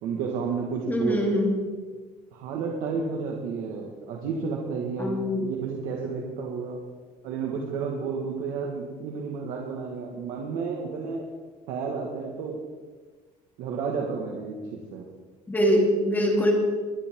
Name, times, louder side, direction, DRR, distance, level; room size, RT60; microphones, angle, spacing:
voice 1, 0.0-1.2 2.3-6.8 7.2-11.2 11.7-12.6 13.6-15.1, right 5 dB, 90° right, -1 dB, 1.8 m, -31 dB
voice 2, 0.9-1.5 5.0-5.5 15.5-16.5, equal, 15° left, 0 dB, 2.6 m, -23 dB
22.0 x 10.5 x 3.8 m, 1.4 s
cardioid pair, 150°, 14 cm